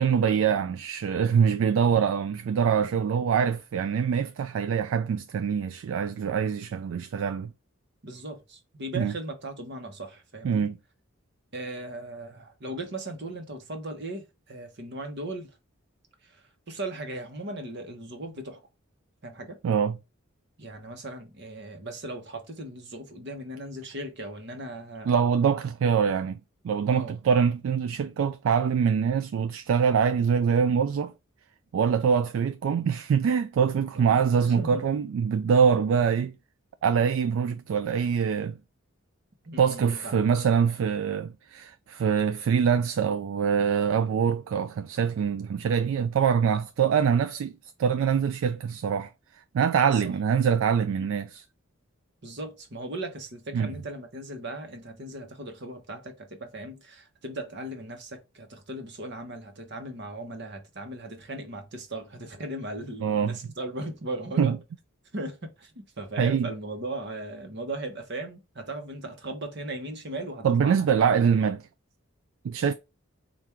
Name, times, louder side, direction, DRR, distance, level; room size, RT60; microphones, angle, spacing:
voice 1, 0.0-7.5 8.9-9.1 10.4-10.8 19.6-20.0 25.1-26.4 26.6-31.1 31.7-36.3 36.8-38.6 39.6-47.5 47.8-49.1 49.5-51.4 53.5-53.7 63.0-63.4 64.4-64.6 66.2-66.5 70.4-71.6 72.4-72.7, right 7 dB, 70° right, 0.3 m, -24 dB
voice 2, 8.0-10.6 11.5-15.5 16.2-18.6 19.2-19.6 20.6-25.2 26.9-27.1 33.9-34.8 39.4-40.3 49.9-50.2 51.0-51.1 52.2-64.6 65.1-71.5 72.6-72.7, right 1 dB, 55° right, 1.0 m, -38 dB
4.4 x 2.5 x 3.5 m
head